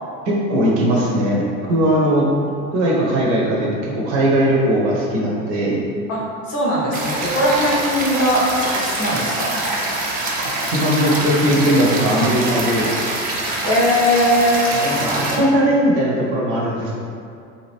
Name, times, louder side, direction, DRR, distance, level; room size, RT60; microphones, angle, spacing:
voice 1, 0.3-2.3 2.7-5.8 10.6-12.9 14.7-16.9, equal, 50° right, -4 dB, 0.8 m, -19 dB
voice 2, 6.1-9.6 13.6-14.6, equal, 35° left, -5 dB, 0.7 m, -19 dB
sound 1, 6.9-15.4, right 2 dB, 20° right, 0.4 m, -24 dB
2.8 x 2.5 x 3.3 m, 2.4 s
figure-of-eight pair, 75°, 41 cm